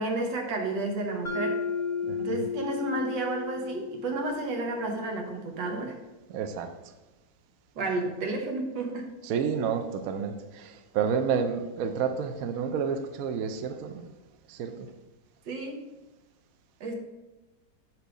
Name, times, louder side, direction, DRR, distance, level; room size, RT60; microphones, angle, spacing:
voice 1, 0.0-1.6 2.2-6.0 7.7-9.1 15.5-15.8 16.8-16.9, right 2 dB, 85° right, 3 dB, 1.8 m, -31 dB
Mallet percussion, 1.2-5.3, left 5 dB, ahead, 1.0 m, -34 dB
voice 2, 2.0-2.4 6.3-6.7 9.3-13.9 14.5-14.7, right 6 dB, 65° right, 7 dB, 0.9 m, -30 dB
6.9 x 4.6 x 5.0 m, 1.1 s
omnidirectional pair, 1.9 m